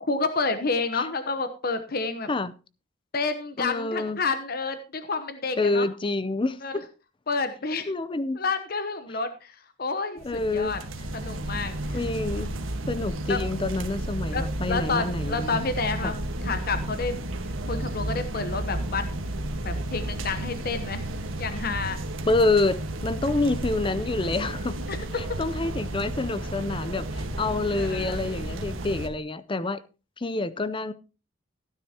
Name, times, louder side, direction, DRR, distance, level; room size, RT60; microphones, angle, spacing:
voice 1, 0.1-2.3 3.1-5.9 6.6-6.7 7.3-7.9 8.3-10.8 11.1-12.0 13.3-13.4 14.3-16.1 16.4-17.1 17.7-19.1 19.6-21.0 21.4-22.0 24.9-25.4 27.7-28.2, left 4 dB, 50° left, 0.9 m, -29 dB
voice 2, 3.6-4.2 5.6-6.6 7.9-8.4 10.2-10.8 11.9-12.5 12.9-15.6 16.0-16.1 22.3-24.9 25.2-29.8 30.2-30.9, left 2 dB, 25° left, 0.5 m, -27 dB
sound 1, 10.2-29.1, right 1 dB, 90° right, 1.5 m, -32 dB
15.5 x 9.8 x 2.9 m
head